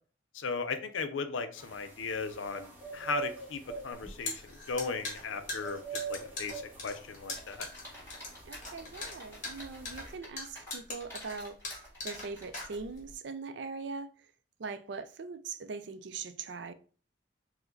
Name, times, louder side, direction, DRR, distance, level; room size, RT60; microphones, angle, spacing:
voice 1, 0.3-7.7, left 4 dB, 90° left, 0.6 m, -37 dB
sound 1, 1.6-10.2, right 5 dB, 10° right, 1.0 m, -46 dB
sound 2, 3.9-13.1, left 3 dB, 40° left, 1.4 m, -41 dB
sound 3, 7.3-10.3 10.5-12.8, left 1 dB, 10° left, 1.9 m, -49 dB
voice 2, 8.4-14.1 14.6-16.7, right 4 dB, 65° right, 0.4 m, -41 dB
4.8 x 2.1 x 3.8 m
head